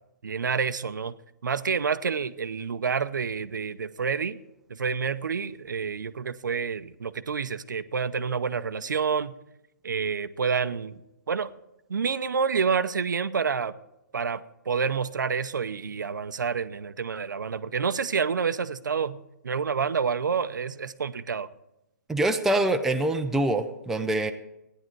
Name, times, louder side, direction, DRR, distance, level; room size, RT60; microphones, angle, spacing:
voice 1, 0.2-1.2 1.4-4.4 4.7-9.3 9.8-11.0 11.3-11.5 11.9-13.8 14.1-21.5, right 6 dB, 90° right, 13 dB, 0.7 m, -28 dB
voice 2, 22.1-24.3, right 1 dB, 5° right, 5 dB, 0.5 m, -25 dB
14.5 x 10.0 x 4.6 m, 0.88 s
hypercardioid pair, 150°, 10 cm